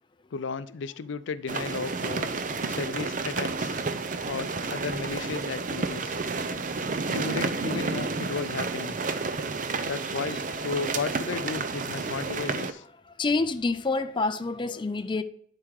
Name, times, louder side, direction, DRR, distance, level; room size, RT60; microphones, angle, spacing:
voice 1, 0.3-2.3 2.7-3.8 4.3-6.2 7.1-9.0 9.9-12.8, left 5 dB, 85° left, 0.5 m, -34 dB
sound 1, 1.5-12.7, right 4 dB, 45° right, 0.6 m, -31 dB
voice 2, 13.0-15.2, left 3 dB, 25° left, 0.4 m, -27 dB
11.0 x 4.8 x 4.7 m
head